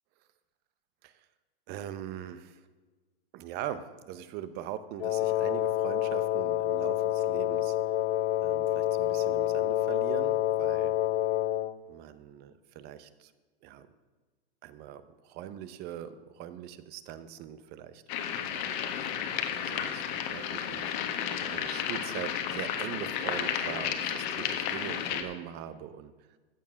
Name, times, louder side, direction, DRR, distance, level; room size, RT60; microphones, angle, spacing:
voice 1, 1.7-2.6 3.3-7.7 8.4-10.9 11.9-13.3 13.6-13.9 14.6-20.9 21.4-26.1, right 10 dB, 35° right, 13 dB, 0.8 m, -42 dB
Wind instrument woodwind instrument, 5.0-11.8, left 13 dB, 75° left, 0.7 m, -28 dB
sound 1, 18.1-25.2, left 9 dB, 50° left, 1.5 m, -32 dB
14.5 x 7.2 x 6.3 m, 1.3 s
hypercardioid pair, 140°, 30 cm